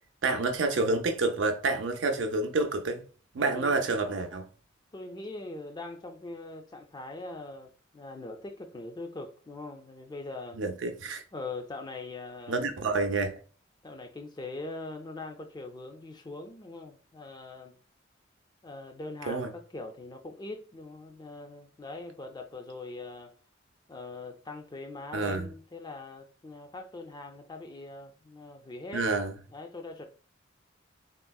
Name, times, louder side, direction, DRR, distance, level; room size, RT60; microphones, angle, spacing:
voice 1, 0.2-3.0 3.3-4.4 10.5-11.2 12.5-13.4 19.3-19.5 25.1-25.5 28.9-29.4, right 3 dB, 75° right, 0.5 m, -28 dB
voice 2, 3.5-4.0 4.9-10.6 11.3-12.7 13.8-17.8 18.6-23.3 23.9-29.1 29.5-30.1, left 2 dB, 20° left, 0.4 m, -42 dB
3.6 x 2.0 x 2.3 m
head